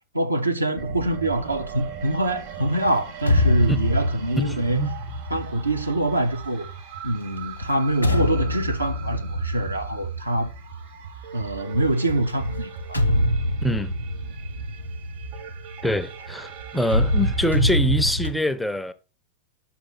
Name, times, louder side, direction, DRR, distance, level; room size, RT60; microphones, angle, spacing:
voice 1, 0.1-4.8 5.3-6.7 7.0-10.5 11.3-13.0, right 1 dB, 80° right, 0.6 m, -25 dB
sound 1, 0.8-17.6, right 8 dB, 45° right, 0.7 m, -39 dB
sound 2, 3.0-6.7 7.4-11.1 12.3-16.3 16.8-18.3, left 1 dB, 85° left, 0.6 m, -25 dB
voice 2, 4.3-5.1 13.6-13.9 15.8-18.9, equal, 5° left, 0.4 m, -25 dB
5.8 x 5.0 x 4.0 m
figure-of-eight pair, 90°, 0 cm